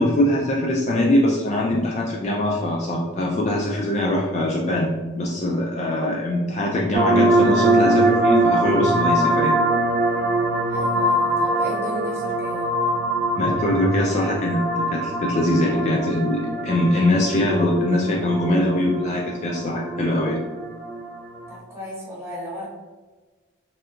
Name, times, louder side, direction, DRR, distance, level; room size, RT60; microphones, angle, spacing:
voice 1, 0.0-9.6 13.4-20.4, left 1 dB, 30° left, -2 dB, 0.3 m, -22 dB
sound 1, 6.9-21.5, right 1 dB, 45° right, 0.4 m, -23 dB
voice 2, 10.7-12.7 21.5-22.7, equal, 15° right, -6 dB, 0.9 m, -35 dB
3.4 x 2.7 x 2.4 m, 1.3 s
head